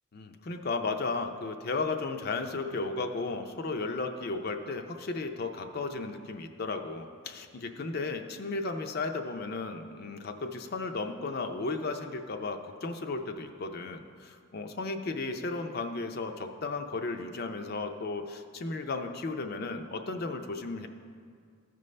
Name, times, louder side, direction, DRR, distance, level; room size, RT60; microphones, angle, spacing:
voice 1, 0.1-20.9, left 3 dB, 45° left, 5 dB, 0.5 m, -34 dB
14.5 x 5.3 x 3.2 m, 2.2 s
head